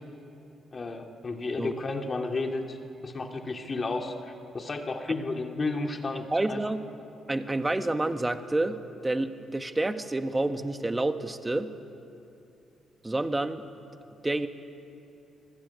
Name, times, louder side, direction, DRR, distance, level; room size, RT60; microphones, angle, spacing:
voice 1, 0.7-2.8 3.0-4.1 4.5-6.6, left 3 dB, 35° left, 3 dB, 2.4 m, -32 dB
voice 2, 6.3-6.8 7.3-8.8 9.0-11.7 13.0-13.6 14.2-14.5, right 2 dB, 15° right, 8 dB, 1.4 m, -28 dB
26.5 x 20.5 x 9.7 m, 2.7 s
cardioid pair, 90°, 0 cm